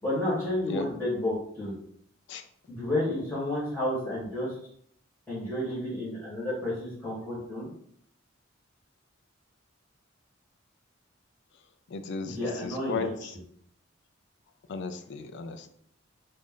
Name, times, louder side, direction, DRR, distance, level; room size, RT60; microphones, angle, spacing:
voice 1, 0.0-1.7 2.7-4.5 5.3-7.7 12.2-13.1, left 1 dB, 10° left, -10 dB, 1.5 m, -31 dB
voice 2, 11.9-13.3 14.7-15.7, left 4 dB, 60° left, 8 dB, 0.3 m, -35 dB
3.1 x 2.5 x 3.8 m, 0.66 s
head